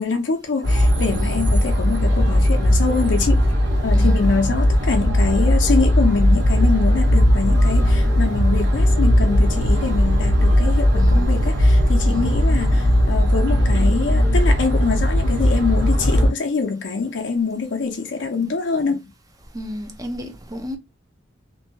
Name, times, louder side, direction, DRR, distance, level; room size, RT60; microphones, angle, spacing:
voice 1, 0.0-3.5 3.8-19.1, left 4 dB, 75° left, 0.5 m, -24 dB
sound 1, 0.6-16.3, left 1 dB, 90° right, 1.1 m, -17 dB
voice 2, 19.5-20.8, equal, 20° right, 0.5 m, -32 dB
2.6 x 2.2 x 2.7 m
head